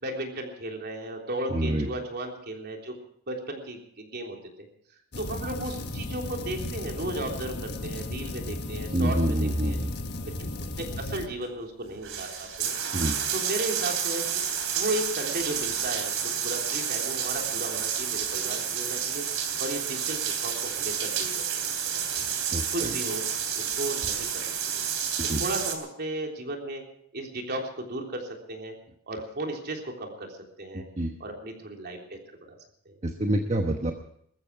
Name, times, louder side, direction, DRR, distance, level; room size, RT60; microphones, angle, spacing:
voice 1, 0.0-2.9 3.3-4.7 5.2-9.8 10.4-10.5 10.8-12.7 13.3-14.2 14.7-16.2 16.4-19.2 19.6-21.4 21.8-22.3 22.7-23.2 23.5-24.8 25.4-26.8 27.1-28.8 29.1-30.8 31.2-32.6 32.8-32.9, right 1 dB, 50° right, 2 dB, 3.5 m, -35 dB
voice 2, 1.5-1.9 8.9-9.9 12.9-13.2 22.5-23.0 25.3-25.4 30.7-31.1 33.0-33.9, right 1 dB, 35° right, 4 dB, 1.1 m, -27 dB
sound 1, 5.1-11.3, left 2 dB, 50° left, 1.6 m, -35 dB
sound 2, 11.4-11.5 11.9-25.7, right 8 dB, 65° right, 3.2 m, -30 dB
20.5 x 14.5 x 4.7 m, 0.70 s
head